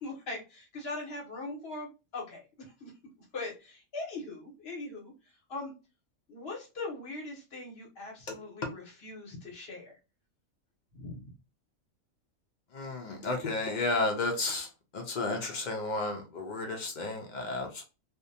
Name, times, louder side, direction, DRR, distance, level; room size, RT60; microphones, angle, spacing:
voice 1, 0.0-2.4 2.8-2.9 3.3-5.1 5.5-5.7 6.3-9.9 10.9-11.2, left 2 dB, 50° left, -1 dB, 1.1 m, -40 dB
voice 2, 12.7-14.7 14.9-17.8, left 2 dB, 80° left, 2 dB, 0.4 m, -32 dB
2.5 x 2.1 x 2.6 m, 0.29 s
omnidirectional pair, 1.4 m